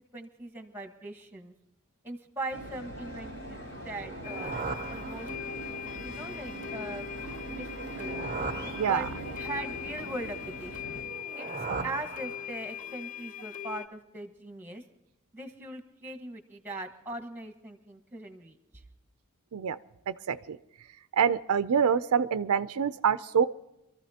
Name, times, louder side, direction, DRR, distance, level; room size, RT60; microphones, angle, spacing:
voice 1, 0.1-1.5 2.0-5.3 6.0-7.1 7.5-7.7 8.0-8.2 8.8-9.1 9.4-11.0 11.4-11.5 11.8-14.8 15.3-18.6, right 2 dB, 10° right, 6 dB, 1.3 m, -40 dB
sound 1, 2.5-11.0, right 1 dB, 80° left, 6.7 m, -41 dB
sound 2, 3.9-5.8 7.7-9.5 11.0-12.8, right 4 dB, 35° right, 0.6 m, -39 dB
sound 3, 4.2-13.9, left 10 dB, 35° left, 0.7 m, -41 dB
voice 2, 20.1-20.6 21.1-23.5, right 7 dB, 90° right, 13 dB, 0.5 m, -26 dB
25.5 x 14.0 x 2.8 m, 0.91 s
head